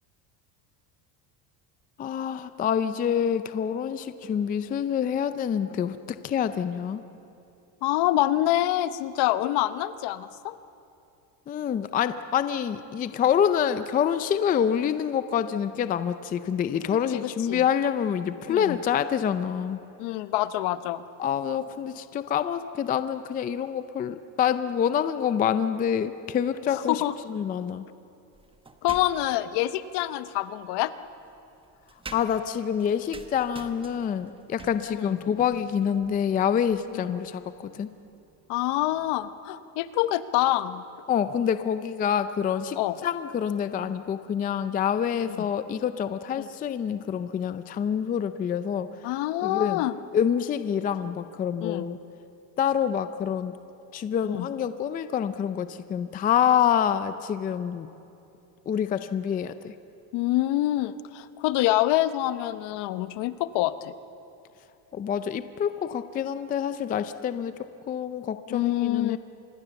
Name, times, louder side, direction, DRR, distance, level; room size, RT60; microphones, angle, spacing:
voice 1, 2.0-7.0 11.5-19.8 21.2-27.0 27.3-27.9 32.1-37.9 41.1-49.0 49.4-49.8 50.1-52.0 52.6-53.5 53.9-57.9 58.7-59.7 64.9-67.5 67.9-69.2, left 8 dB, 20° left, 12 dB, 0.4 m, -27 dB
voice 2, 7.8-10.5 17.1-17.6 18.5-18.8 20.0-21.0 26.7-27.1 28.8-30.9 34.9-35.2 36.9-37.2 38.5-40.8 42.8-43.0 45.3-45.5 46.4-46.5 49.0-49.9 51.6-51.9 54.2-54.5 60.1-63.9 68.5-69.2, left 15 dB, 60° left, 13 dB, 1.0 m, -26 dB
sound 1, 28.3-29.5 30.6-39.3, right 3 dB, 10° right, 1.1 m, -49 dB
26.0 x 21.0 x 7.0 m, 2.7 s
cardioid pair, 150°, 47 cm